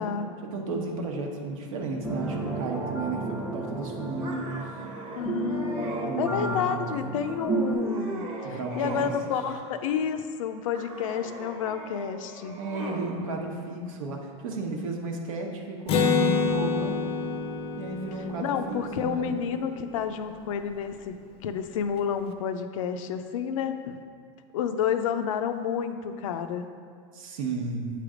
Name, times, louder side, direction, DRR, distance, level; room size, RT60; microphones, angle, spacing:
voice 1, 0.4-4.6 6.0-6.8 8.4-9.1 12.6-17.0 17.8-19.4 27.1-27.9, right 3 dB, 90° right, 1 dB, 1.0 m, -33 dB
sound 1, 2.0-7.7, right 3 dB, 10° right, 0.7 m, -32 dB
sound 2, 4.2-6.1 6.6-7.2 7.6-9.2 9.4-10.1 10.7-13.1, right 1 dB, 30° right, 1.0 m, -40 dB
voice 2, 5.1-5.8 6.2-12.6 18.4-24.0 24.5-26.6, left 7 dB, 90° left, 8 dB, 0.5 m, -30 dB
Acoustic guitar, 15.9-19.5, left 5 dB, 35° left, 0.5 m, -27 dB
7.7 x 3.3 x 4.9 m, 2.1 s
supercardioid pair, 130°, 17 cm